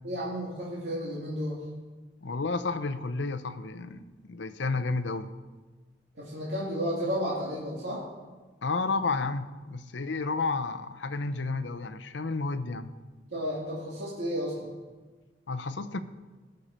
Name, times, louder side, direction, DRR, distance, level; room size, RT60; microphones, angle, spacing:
voice 1, 0.0-1.6 6.2-8.1 13.2-14.8, equal, 70° right, -5 dB, 2.3 m, -32 dB
voice 2, 2.2-5.3 8.6-12.9 15.5-16.0, left 3 dB, 75° left, 11 dB, 0.7 m, -31 dB
18.5 x 6.6 x 4.4 m, 1.3 s
head